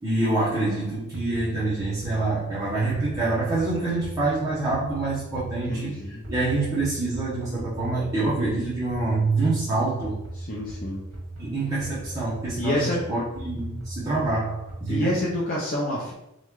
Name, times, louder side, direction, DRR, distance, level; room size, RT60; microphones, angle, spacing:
voice 1, 0.0-10.2 11.4-15.1, right 2 dB, 15° right, -11 dB, 1.0 m, -26 dB
sound 1, 1.1-15.4, right 1 dB, 60° right, 1.3 m, -39 dB
voice 2, 5.7-6.2 10.4-11.0 12.6-13.0 14.9-16.1, left 1 dB, 40° left, -5 dB, 0.7 m, -28 dB
3.7 x 3.1 x 3.6 m, 0.85 s
head